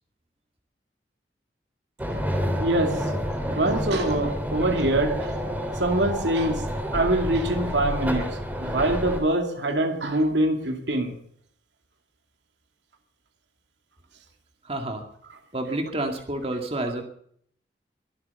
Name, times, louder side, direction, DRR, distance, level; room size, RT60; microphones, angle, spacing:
sound 1, 2.0-9.2, equal, 10° right, 3.3 m, -29 dB
voice 1, 2.6-3.1 3.5-5.3 5.8-11.1, right 1 dB, 90° right, 2.7 m, -24 dB
voice 2, 14.6-15.1 15.5-17.0, right 1 dB, 35° right, 2.1 m, -29 dB
22.5 x 8.1 x 6.9 m
head